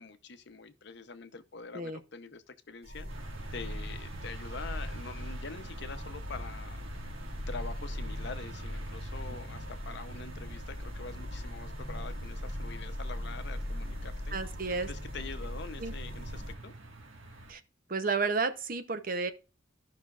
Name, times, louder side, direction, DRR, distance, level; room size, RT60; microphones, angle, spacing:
voice 1, 0.0-3.1 3.5-6.8 7.5-14.4 14.8-16.7, left 4 dB, 55° left, 0.7 m, -45 dB
sound 1, 2.8-16.5, equal, 90° right, 3.2 m, -39 dB
sound 2, 3.1-17.5, right 2 dB, 70° right, 1.6 m, -49 dB
voice 2, 14.3-14.9 15.8-15.9 17.5-17.6 17.9-19.3, right 4 dB, 40° right, 0.7 m, -31 dB
14.5 x 5.7 x 2.4 m
head